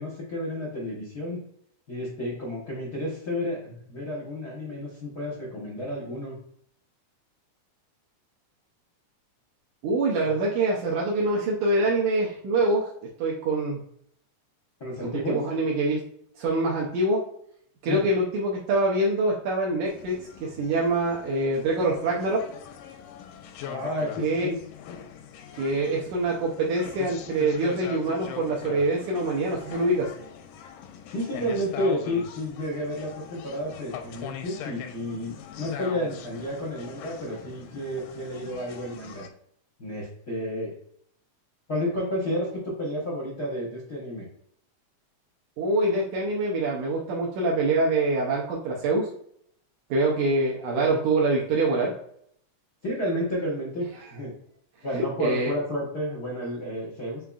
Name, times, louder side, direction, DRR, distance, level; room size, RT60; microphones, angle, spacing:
voice 1, 0.0-1.4 1.9-6.3 14.8-15.4 17.8-18.0 23.6-24.6 31.1-39.2 39.8-40.7 41.7-44.3 50.6-50.9 52.8-54.3 54.8-57.2, left 1 dB, 65° left, -4 dB, 0.9 m, -31 dB
voice 2, 9.8-12.9 13.2-13.8 15.3-16.0 16.4-17.2 17.8-22.4 24.2-24.5 25.6-30.1 45.6-49.1 49.9-51.9 55.0-55.5, right 2 dB, 75° right, -3 dB, 2.1 m, -25 dB
sound 1, 19.9-39.3, left 8 dB, 85° left, 2.2 m, -42 dB
5.6 x 3.8 x 2.4 m, 0.68 s
omnidirectional pair, 3.6 m